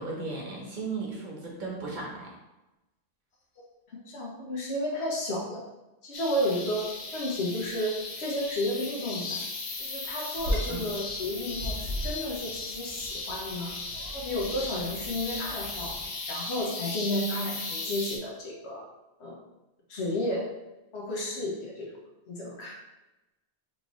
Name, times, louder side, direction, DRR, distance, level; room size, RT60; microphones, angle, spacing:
voice 1, 0.0-2.3 10.7-10.9, right 3 dB, 50° right, -3 dB, 1.0 m, -36 dB
voice 2, 4.1-5.6 6.0-6.9 7.1-9.4 9.8-13.8 14.1-16.0 16.3-18.8 19.2-19.4 19.9-20.5 20.9-22.0 22.3-22.8, left 1 dB, 80° left, -3 dB, 1.2 m, -32 dB
sound 1, 6.1-18.2, left 3 dB, 50° left, 0.7 m, -37 dB
Bird vocalization bird call bird song, 10.3-16.0, equal, 75° right, 1.3 m, -37 dB
4.2 x 2.7 x 3.1 m, 1.0 s
omnidirectional pair, 1.1 m